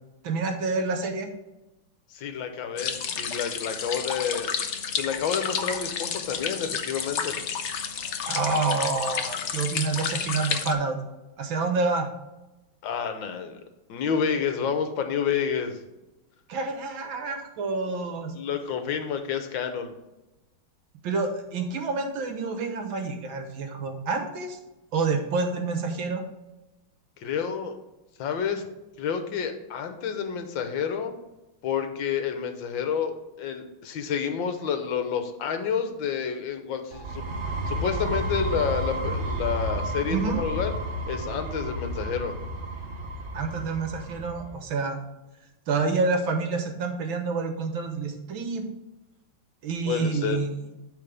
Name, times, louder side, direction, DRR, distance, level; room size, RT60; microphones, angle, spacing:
voice 1, 0.2-1.3 8.3-11.0 11.4-12.1 16.5-18.3 21.0-24.6 24.9-26.2 40.1-40.4 43.3-45.0 45.7-48.6 49.6-50.7, right 4 dB, 75° right, 5 dB, 1.9 m, -28 dB
voice 2, 2.1-4.6 5.0-7.4 12.8-13.6 13.9-15.8 18.3-19.9 27.2-27.7 28.2-28.7 29.0-31.1 31.6-37.3 37.7-40.7 41.1-42.3 49.9-50.4, left 7 dB, 70° left, 7 dB, 1.7 m, -29 dB
sound 1, 2.8-10.7, left 6 dB, 90° left, 0.6 m, -31 dB
sound 2, 36.9-44.5, right 1 dB, 45° right, 0.9 m, -31 dB
12.5 x 4.2 x 3.4 m, 0.99 s
omnidirectional pair, 2.2 m